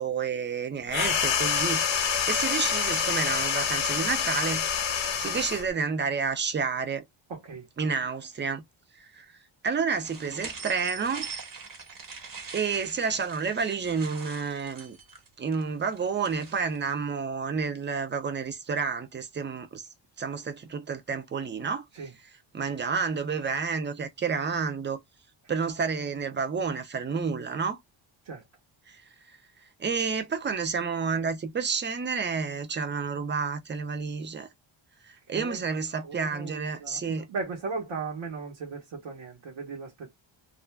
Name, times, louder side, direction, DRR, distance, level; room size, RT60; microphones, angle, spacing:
voice 1, 0.0-4.7 5.2-7.0 7.8-8.6 9.0-9.4 9.6-11.3 12.5-15.0 15.4-19.9 20.2-21.8 22.5-25.0 25.5-27.8 28.9-29.0 29.3-29.4 29.8-34.5 35.0-37.3, right 5 dB, 25° right, 0.4 m, -30 dB
sound 1, 0.9-5.7, left 7 dB, 65° left, 0.8 m, -27 dB
voice 2, 7.3-7.7 21.9-22.1 28.2-28.4 35.3-35.6 36.0-40.1, right 4 dB, 65° right, 1.0 m, -37 dB
sound 2, 9.9-16.8, right 5 dB, 40° right, 1.1 m, -43 dB
2.5 x 2.2 x 3.2 m
wide cardioid pair, 140°, 49 cm